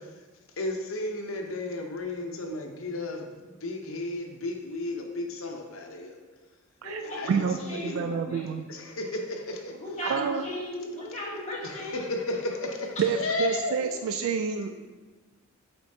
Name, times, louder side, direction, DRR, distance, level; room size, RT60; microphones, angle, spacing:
voice 1, 0.6-6.1 7.0-7.5 7.8-8.0 8.7-9.7 11.9-13.7, left 2 dB, 70° left, 2 dB, 0.8 m, -33 dB
voice 2, 6.8-8.5 9.7-12.2 13.8-13.9, equal, 35° left, -5 dB, 1.6 m, -36 dB
voice 3, 7.8-8.6 10.0-10.4 13.0-14.7, right 6 dB, 70° right, 6 dB, 0.3 m, -28 dB
7.9 x 4.5 x 2.7 m, 1.3 s
head